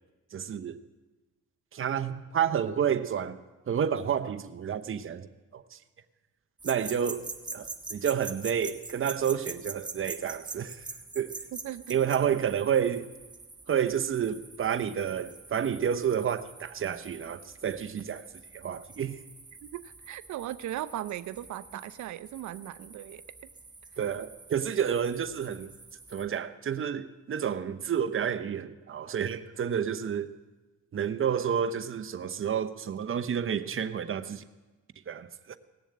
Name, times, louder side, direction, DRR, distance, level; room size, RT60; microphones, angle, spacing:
voice 1, 0.3-0.8 1.7-3.4 3.7-5.8 6.6-10.8 11.1-11.3 11.9-13.1 13.7-18.3 18.5-19.2 24.0-25.7 26.1-30.3 30.9-34.4 35.1-35.6, right 8 dB, 45° right, 0.8 m, -30 dB
sound 1, 6.6-26.4, right 3 dB, 15° right, 1.0 m, -45 dB
voice 2, 11.6-12.0 19.6-23.2, right 13 dB, 70° right, 0.6 m, -38 dB
18.0 x 7.1 x 8.7 m
cardioid pair, 90°, 30 cm